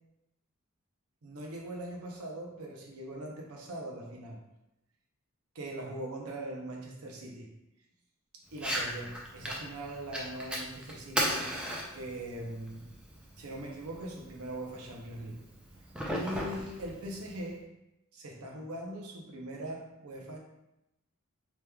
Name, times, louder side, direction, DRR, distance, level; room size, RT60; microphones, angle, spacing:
voice 1, 1.2-4.4 5.5-7.5 8.5-11.5 11.9-12.8 13.4-15.4 16.2-17.6 18.1-20.4, right 1 dB, 85° right, -1 dB, 0.7 m, -41 dB
Fire, 8.5-17.5, equal, 5° right, 0.3 m, -38 dB
3.4 x 3.0 x 2.2 m, 0.91 s
head